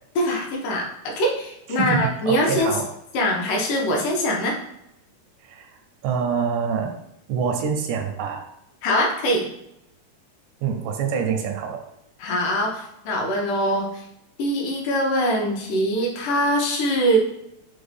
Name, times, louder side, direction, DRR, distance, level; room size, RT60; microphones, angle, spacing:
voice 1, 0.2-2.7 3.1-4.5 8.8-9.5 12.2-14.0 14.4-17.2, equal, 80° left, -1 dB, 2.3 m, -23 dB
voice 2, 1.8-2.9 5.4-5.7 6.0-6.9 7.3-8.4 10.6-11.9, right 6 dB, 85° right, 4 dB, 2.1 m, -25 dB
6.1 x 2.2 x 3.3 m, 0.83 s
omnidirectional pair, 3.7 m